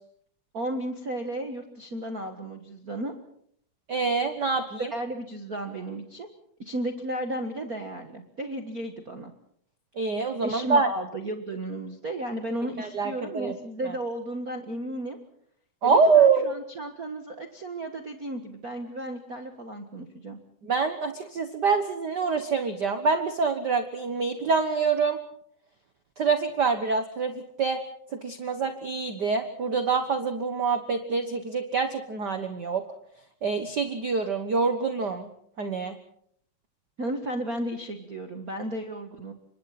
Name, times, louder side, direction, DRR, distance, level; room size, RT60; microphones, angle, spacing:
voice 1, 0.5-3.1 4.8-6.3 6.6-9.3 10.4-15.2 15.8-20.4 37.0-39.3, right 1 dB, 40° right, 5 dB, 1.4 m, -34 dB
voice 2, 3.9-4.9 10.0-10.9 12.8-13.5 13.8-13.9 15.8-16.5 20.6-25.2 26.2-27.3 27.6-27.8 28.2-32.8 33.4-35.3 35.6-35.9, right 5 dB, 55° right, 7 dB, 1.1 m, -25 dB
29.5 x 25.5 x 4.3 m, 0.65 s
omnidirectional pair, 3.8 m